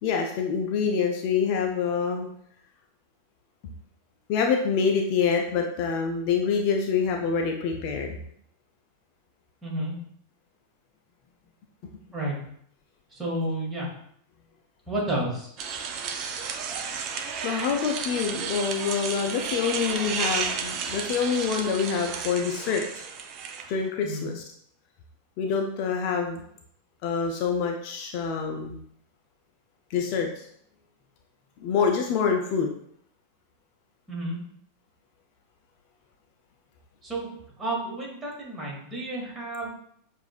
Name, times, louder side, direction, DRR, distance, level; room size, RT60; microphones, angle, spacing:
voice 1, 0.0-2.3 4.3-8.2 17.4-23.0 23.7-24.4 25.4-26.4 27.0-28.8 29.9-30.5 31.6-32.8, left 6 dB, 45° left, 3 dB, 0.5 m, -26 dB
voice 2, 9.6-9.9 12.1-12.4 13.1-13.9 14.9-15.5 24.0-24.3 34.1-34.4 37.0-37.3 37.6-39.7, right 1 dB, 20° right, -3 dB, 1.7 m, -31 dB
sound 1, 15.6-23.8, right 6 dB, 35° right, 0.5 m, -32 dB
6.8 x 2.6 x 2.4 m, 0.68 s
figure-of-eight pair, 90°, 0 cm